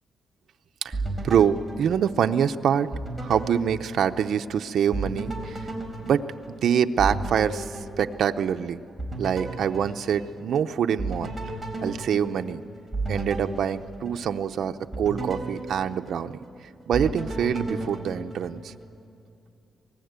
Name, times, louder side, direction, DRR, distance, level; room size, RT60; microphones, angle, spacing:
sound 1, 0.9-2.5 2.9-4.5 4.9-8.6 9.0-10.6 11.0-14.5 14.9-16.5 16.9-18.9, right 2 dB, 5° right, 4.3 m, -34 dB
voice 1, 1.2-2.9 3.2-5.7 6.0-6.2 6.6-8.8 9.2-11.6 11.8-12.6 13.1-16.4 16.9-18.7, right 8 dB, 70° right, 7 dB, 0.6 m, -25 dB
26.0 x 19.0 x 8.1 m, 2.6 s
wide cardioid pair, 145°, 0 cm